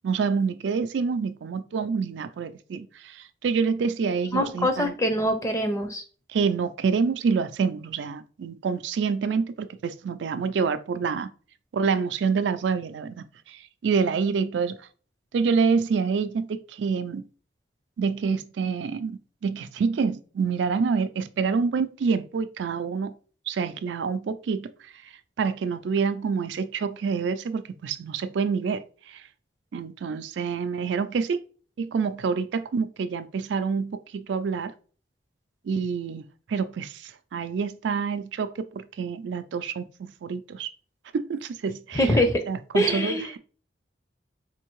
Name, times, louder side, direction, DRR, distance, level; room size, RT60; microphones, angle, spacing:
voice 1, 0.0-4.9 6.3-11.3 11.7-14.9 15.3-17.2 18.0-23.1 23.5-29.2 29.7-31.4 31.8-34.7 35.6-36.2 36.5-40.7 41.1-42.2 42.5-43.4, right 5 dB, 80° right, 0.4 m, -27 dB
voice 2, 4.3-6.0 41.9-42.4 42.7-43.3, equal, 15° left, 0.5 m, -23 dB
4.3 x 2.6 x 3.0 m
head